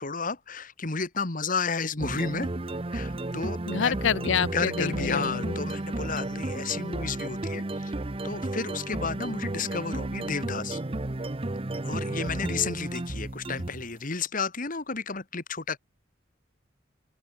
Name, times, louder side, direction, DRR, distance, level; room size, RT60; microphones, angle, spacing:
voice 1, 0.0-2.5 2.9-3.9 4.5-10.8 11.8-15.8, left 4 dB, 45° left, 1.8 m, -32 dB
sound 1, 2.0-13.9, right 2 dB, 30° right, 0.8 m, -33 dB
voice 2, 3.7-5.5, left 7 dB, 75° left, 0.6 m, -27 dB
open air
head